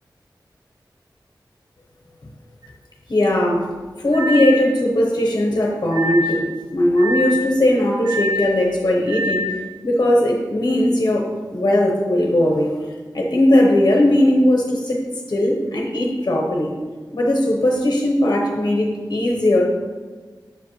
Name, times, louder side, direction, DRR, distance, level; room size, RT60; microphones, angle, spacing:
sound 1, 2.6-2.7 4.1-4.7 5.9-6.4 7.0-7.5 8.0-8.6 9.1-9.6, left 1 dB, 55° right, 1.8 m, -25 dB
voice 1, 3.1-3.7 4.0-6.4 6.7-9.5 9.8-11.3 11.5-12.7 13.1-15.0 15.3-16.7 17.1-19.6, left 1 dB, 50° left, -1 dB, 0.9 m, -18 dB
6.7 x 5.1 x 3.0 m, 1.4 s
wide cardioid pair, 65°, 8 cm